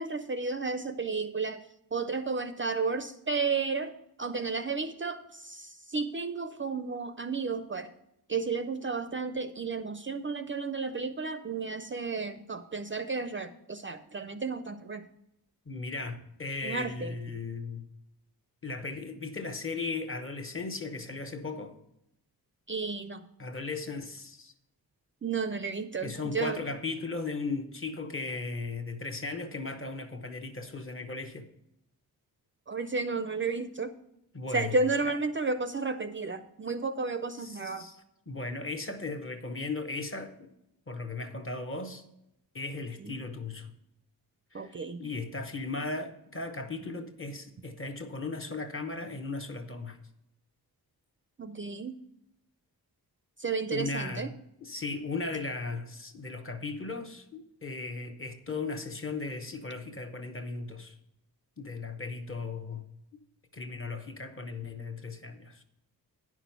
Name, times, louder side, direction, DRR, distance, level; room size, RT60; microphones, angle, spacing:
voice 1, 0.0-1.6 1.9-7.9 8.3-15.0 16.6-17.1 22.7-23.2 25.2-26.6 32.7-33.9 34.5-37.9 43.0-43.2 44.5-45.0 51.4-52.0 53.4-54.3, right 4 dB, 35° right, 0.4 m, -32 dB
voice 2, 15.7-17.8 18.6-21.8 23.4-24.5 26.0-31.5 34.3-34.8 35.0-35.1 37.4-37.9 38.3-40.5 40.9-42.0 42.5-43.7 44.5-44.7 45.0-50.0 53.7-61.0 61.6-62.9 63.5-65.6, left 3 dB, 35° left, 0.9 m, -37 dB
9.9 x 6.0 x 5.7 m
wide cardioid pair, 150°, 38 cm